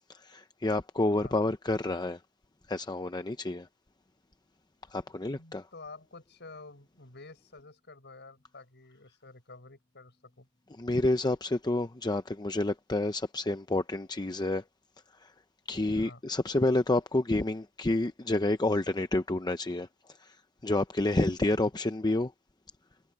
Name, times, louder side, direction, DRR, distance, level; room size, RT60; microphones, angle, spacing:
voice 1, 0.1-2.2 2.7-3.7 4.9-5.6 10.8-14.6 15.2-15.3 15.7-19.9 20.2-20.4 20.6-22.3, left 2 dB, 20° left, 0.7 m, -29 dB
voice 2, 5.0-10.5 16.0-16.2, left 3 dB, 55° left, 6.8 m, -50 dB
head